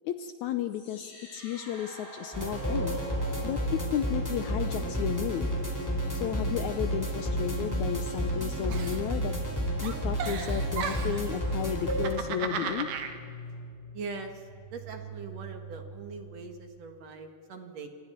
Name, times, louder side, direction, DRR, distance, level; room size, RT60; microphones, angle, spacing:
voice 1, 0.0-3.0 3.4-5.5 6.1-9.3 9.8-12.9, left 10 dB, 75° left, 9 dB, 2.0 m, -33 dB
sound 1, 0.7-16.7, right 1 dB, 60° left, 8.7 m, -45 dB
sound 2, 2.3-12.1, equal, 5° left, 3.2 m, -31 dB
Giggle, 8.7-9.5 9.8-11.3 11.8-13.1, right 6 dB, 75° right, 3.1 m, -35 dB
voice 2, 13.9-14.3 14.7-17.9, right 4 dB, 60° right, 5 dB, 2.6 m, -41 dB
28.0 x 25.5 x 4.5 m, 2.5 s
omnidirectional pair, 3.7 m